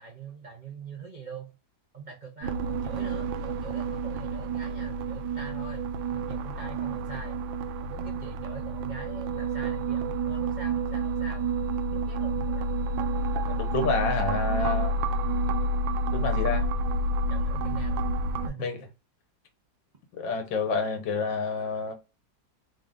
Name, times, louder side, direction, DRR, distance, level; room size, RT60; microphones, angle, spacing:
voice 1, 0.0-1.5 1.9-7.4 7.8-11.4 11.9-12.7 17.3-18.1 18.4-18.9, right 4 dB, 60° right, 0.4 m, -43 dB
sound 1, 2.4-18.5, right 2 dB, 85° right, 1.3 m, -29 dB
voice 2, 13.5-14.9 16.1-16.7 18.6-18.8 20.1-21.9, left 4 dB, 75° left, 1.6 m, -29 dB
3.8 x 2.4 x 3.7 m
omnidirectional pair, 2.0 m